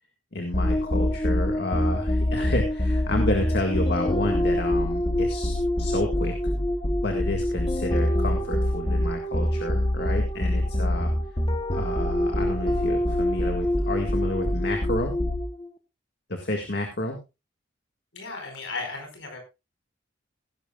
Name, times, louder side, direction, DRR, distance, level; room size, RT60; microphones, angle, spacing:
voice 1, 0.3-6.3 7.0-11.1 11.7-15.1 16.3-17.2, left 1 dB, 55° left, 3 dB, 1.9 m, -30 dB
sound 1, 0.5-15.7, left 1 dB, 25° left, 1.0 m, -25 dB
voice 2, 18.1-19.4, left 3 dB, 70° left, 4 dB, 5.0 m, -35 dB
17.0 x 11.5 x 2.4 m, 0.26 s
head